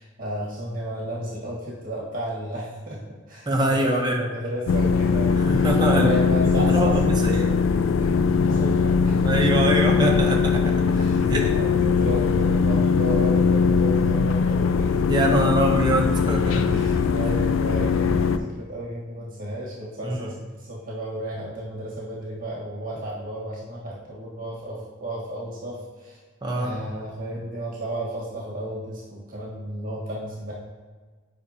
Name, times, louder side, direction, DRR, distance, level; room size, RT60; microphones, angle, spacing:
voice 1, 0.0-7.0 7.4-7.5 8.0-8.1 8.4-9.2 10.9-15.0 15.3-15.4 16.7-26.2 26.5-30.5, equal, 45° right, -5 dB, 1.5 m, -33 dB
voice 2, 3.5-4.3 5.3-6.2 6.5-7.6 9.2-10.7 11.3-11.5 15.1-16.8 20.0-20.3 26.4-26.8, right 1 dB, 20° right, 1 dB, 0.9 m, -24 dB
sound 1, 4.7-18.4, left 5 dB, 80° left, 0.4 m, -21 dB
8.6 x 5.4 x 2.8 m, 1.4 s
head